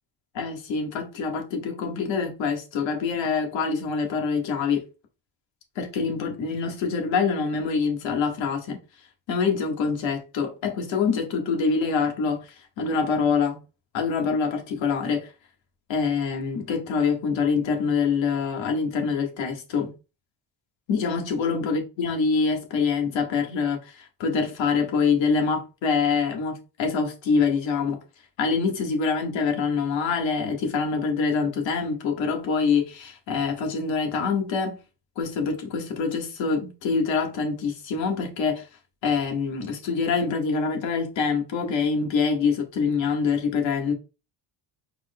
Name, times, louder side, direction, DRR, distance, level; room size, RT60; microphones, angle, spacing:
voice 1, 0.3-4.8 5.8-8.8 9.3-12.4 12.8-13.6 13.9-15.3 15.9-19.9 20.9-28.0 28.4-34.8 35.2-38.7 39.0-43.9, left 5 dB, 65° left, 1.7 m, -25 dB
4.9 x 4.4 x 2.3 m
cardioid pair, 150°, 48 cm